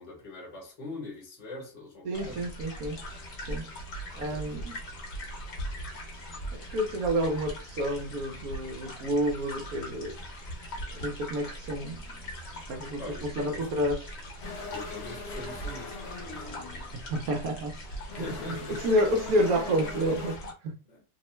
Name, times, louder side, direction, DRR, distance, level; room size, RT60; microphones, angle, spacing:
voice 1, 0.0-2.5 4.3-4.7 13.0-13.7 14.7-16.5 18.1-18.9 20.9-21.0, left 2 dB, 30° left, 1.0 m, -43 dB
voice 2, 2.0-3.0 3.5-3.7 4.1-4.8 6.5-10.2 10.9-12.0 12.7-14.0 17.1-17.8 18.2-20.8, equal, 70° right, 1.0 m, -29 dB
sound 1, 2.1-20.5, equal, 50° left, 1.0 m, -41 dB
sound 2, 14.4-20.4, left 3 dB, 65° left, 1.2 m, -42 dB
2.9 x 2.1 x 3.0 m
omnidirectional pair, 1.8 m